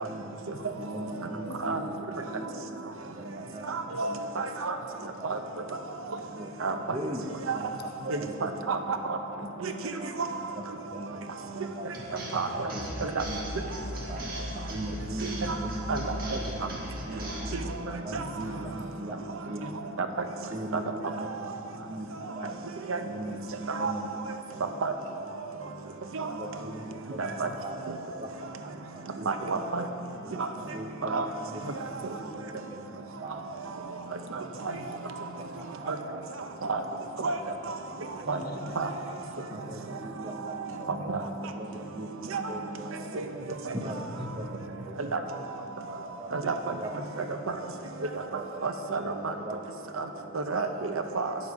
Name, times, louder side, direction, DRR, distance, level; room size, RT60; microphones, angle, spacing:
voice 1, 0.0-0.4 0.8-1.9 2.3-2.5 3.2-4.5 5.0-5.1 5.5-5.7 6.0-6.5 6.9-7.7 8.1-8.5 9.4-10.1 10.9-11.9 12.3-12.4 12.7-12.9 13.3-13.4 13.8-14.2 14.5-16.2 16.5-16.6 17.1-17.5 17.8-18.7 19.0-19.7 20.0-21.5 21.9-22.1 22.3-22.6 22.9-24.2 24.7-24.8 25.5-25.9 26.3-27.8 28.1-28.3 28.6-29.5 29.8-29.9 30.2-31.2 31.5-31.7 32.1-32.6 32.9-33.4 33.8-35.0 35.4-35.5 35.8-37.0 37.4-38.3 39.5-41.1 41.5-43.4 43.7-45.3 45.7-46.3 46.7-46.9 47.2-47.3 47.9-48.0 48.3-48.6 49.3-49.5 50.1-50.4 50.9-51.0, right 1 dB, 25° right, 3 dB, 0.7 m, -40 dB
voice 2, 0.5-0.8 1.4-1.7 3.4-3.6 7.7-8.1 15.0-15.2 18.2-19.0 27.5-27.6 31.6-32.2 34.8-35.0 35.4-35.6 38.2-38.9 39.5-40.1 47.0-47.1, left 1 dB, 45° left, 4 dB, 0.6 m, -45 dB
voice 3, 3.7-4.8 5.2-5.4 6.6-6.7 7.5-7.6 8.1-9.2 9.6-9.7 10.2-10.3 12.3-12.7 13.0-13.2 15.9-16.0 22.9-23.0 23.8-23.9 24.8-24.9 26.1-26.3 27.2-27.5 29.3-29.8 30.4-30.5 31.0-31.3 35.9-36.0 36.7-36.8 37.2-37.4 38.3-38.4 38.8-38.9 40.9-41.2 42.3-42.4 43.1-43.2 45.1-45.2 46.3-46.6 48.1-48.2 48.6-49.3 50.0-50.1 50.3-51.3, right 4 dB, 70° right, 6 dB, 0.6 m, -30 dB
sound 1, 11.9-17.7, equal, 40° right, 1.3 m, -37 dB
9.5 x 7.2 x 4.7 m, 2.6 s
head